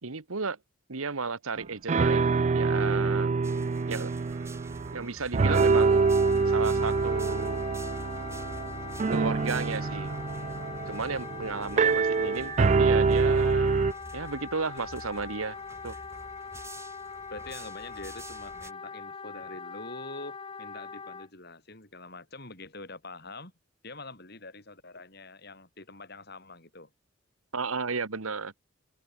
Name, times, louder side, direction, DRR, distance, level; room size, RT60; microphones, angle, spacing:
voice 1, 0.0-0.6 0.9-3.3 3.9-4.1 4.9-6.1 6.5-7.6 9.1-10.1 10.9-15.6 15.8-16.0 27.5-28.5, right 4 dB, 90° right, 1.4 m, -33 dB
sound 1, 1.6-1.7 1.9-5.1 5.3-13.9, right 4 dB, 35° right, 0.3 m, -26 dB
sound 2, 3.4-18.7, right 2 dB, 15° right, 2.3 m, -50 dB
Wind instrument woodwind instrument, 5.4-21.3, left 5 dB, 25° left, 0.6 m, -42 dB
voice 2, 17.3-23.5 23.8-26.9, left 2 dB, 50° left, 7.0 m, -45 dB
head